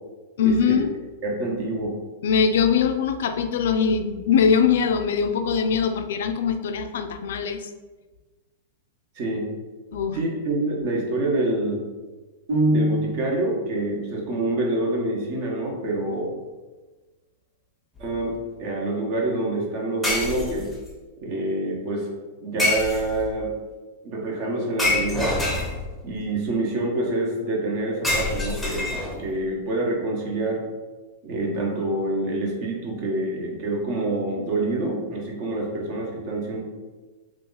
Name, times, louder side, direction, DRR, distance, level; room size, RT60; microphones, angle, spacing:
voice 1, 0.4-0.9 2.2-7.7 9.9-10.2, left 6 dB, 75° left, 7 dB, 0.3 m, -22 dB
voice 2, 1.2-1.9 9.2-9.5 10.1-11.8 12.7-16.3 18.0-20.7 21.2-22.1 22.4-23.5 24.0-25.4 26.0-30.6 31.2-36.6, right 2 dB, 50° right, -1 dB, 0.9 m, -26 dB
sound 1, 12.5-13.5, right 1 dB, 70° right, 1.4 m, -22 dB
sound 2, 18.0-18.2 20.0-20.9 22.6-23.4 24.8-26.1 28.0-29.4, left 2 dB, ahead, 0.8 m, -26 dB
2.8 x 2.4 x 3.8 m, 1.3 s
hypercardioid pair, 140°, 0 cm